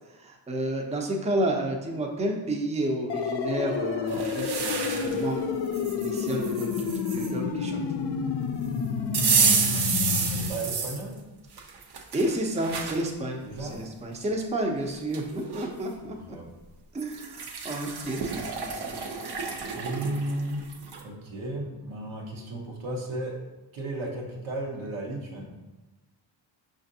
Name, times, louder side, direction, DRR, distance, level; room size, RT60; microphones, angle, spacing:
voice 1, 0.1-5.4 6.0-7.8 12.1-16.4 16.9-19.1, right 1 dB, 15° right, 2 dB, 0.6 m, -31 dB
sound 1, 3.1-10.5, left 5 dB, 55° left, 0.5 m, -29 dB
Measuring Rice, 4.1-5.2 5.7-7.3 9.1-11.0 11.6-13.0 13.6-13.7 14.8-14.9 15.1-15.7 17.0-21.0, right 5 dB, 55° right, 0.6 m, -29 dB
voice 2, 9.5-11.1 13.4-13.8 16.0-16.5 19.7-20.7 21.0-23.4 23.7-25.4, right 1 dB, 80° right, -1 dB, 1.0 m, -34 dB
5.0 x 2.5 x 2.7 m, 1.1 s
supercardioid pair, 55°, 47 cm